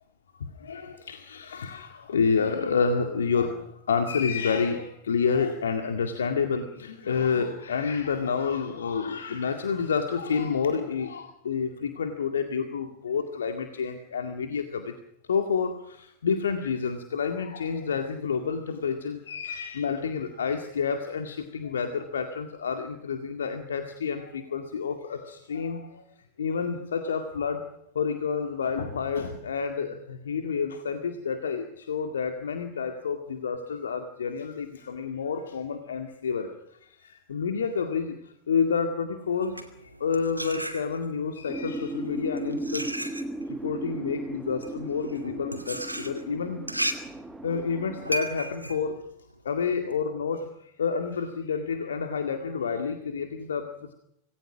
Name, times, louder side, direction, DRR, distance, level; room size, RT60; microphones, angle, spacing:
voice 1, 0.4-14.9 15.3-26.0 26.4-27.6 27.9-36.5 37.0-39.6 40.0-42.9 43.5-46.6 47.4-49.0 49.4-53.9, left 6 dB, 65° left, 6 dB, 2.1 m, -29 dB
sound 1, 39.3-41.3 42.0-49.9, right 1 dB, 85° right, 2.6 m, -35 dB
sound 2, 41.5-48.2, right 2 dB, 5° right, 1.3 m, -36 dB
26.5 x 20.0 x 6.3 m, 0.74 s
figure-of-eight pair, 90°, 0 cm